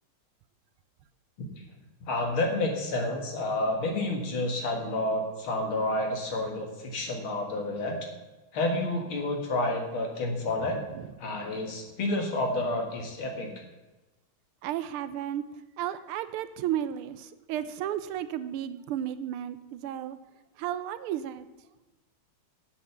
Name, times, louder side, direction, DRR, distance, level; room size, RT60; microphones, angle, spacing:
voice 1, 2.1-8.0 8.5-10.8 11.2-13.5, left 2 dB, 70° left, 2 dB, 2.6 m, -29 dB
voice 2, 10.6-11.1 14.6-15.4 15.8-20.2 20.6-21.5, right 11 dB, 85° right, 13 dB, 1.5 m, -33 dB
8.3 x 8.0 x 7.0 m, 1.1 s
omnidirectional pair, 2.4 m